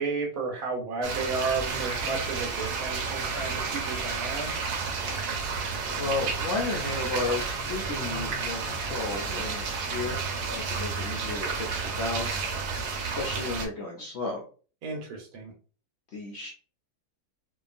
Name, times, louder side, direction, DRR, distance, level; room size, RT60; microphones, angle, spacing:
voice 1, 0.0-4.5 14.8-15.5, right 4 dB, 70° right, 1 dB, 1.2 m, -32 dB
sound 1, 1.0-13.7, right 5 dB, 85° right, 1.2 m, -31 dB
Screaming, 1.6-6.1 6.7-8.4, right 1 dB, 50° right, 1.0 m, -43 dB
voice 2, 5.9-10.2 10.5-14.4 16.1-16.5, left 3 dB, 65° left, -1 dB, 0.7 m, -33 dB
2.8 x 2.3 x 2.4 m, 0.39 s
omnidirectional pair, 1.7 m